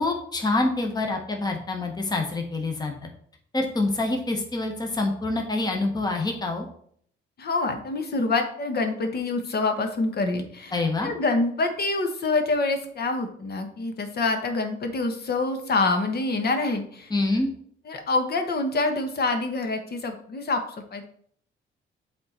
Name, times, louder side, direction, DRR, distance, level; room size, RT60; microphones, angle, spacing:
voice 1, 0.0-2.9 3.5-6.7 10.7-11.1 17.1-17.5, left 2 dB, 20° left, 3 dB, 1.1 m, -26 dB
voice 2, 7.4-17.1 17.9-20.6 20.9-21.0, left 3 dB, 50° left, 5 dB, 1.3 m, -26 dB
7.6 x 3.7 x 4.3 m, 0.62 s
cardioid pair, 90°, 20 cm